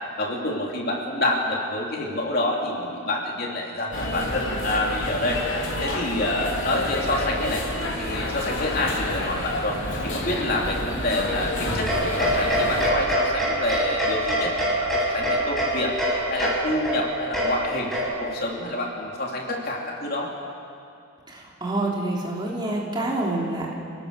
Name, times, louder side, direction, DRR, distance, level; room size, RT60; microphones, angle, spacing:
voice 1, 0.2-5.5 5.8-7.6 8.0-9.8 10.0-14.5 14.8-15.9 16.3-20.3, left 1 dB, 45° left, -1 dB, 3.3 m, -27 dB
sound 1, 3.9-12.9, left 1 dB, 65° left, 3.5 m, -29 dB
sound 2, 11.9-18.4, right 1 dB, ahead, 7.1 m, -25 dB
voice 2, 21.3-23.8, right 2 dB, 20° right, -3 dB, 3.2 m, -27 dB
29.0 x 17.5 x 6.8 m, 2.5 s
head